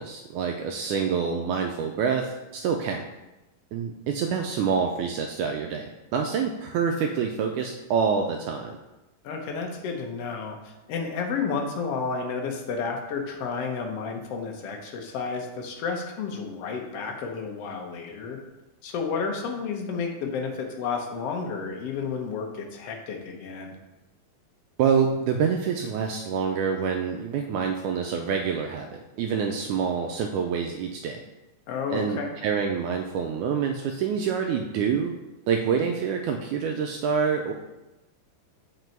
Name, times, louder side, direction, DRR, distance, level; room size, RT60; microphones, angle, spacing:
voice 1, 0.0-3.0 3.7-8.8 24.8-31.2 31.9-35.1 35.5-37.5, right 6 dB, 85° right, 3 dB, 1.8 m, -26 dB
voice 2, 9.2-18.4 18.8-23.8 31.7-32.3, left 5 dB, 65° left, 2 dB, 1.6 m, -31 dB
8.0 x 5.4 x 4.5 m, 1.0 s
omnidirectional pair, 3.9 m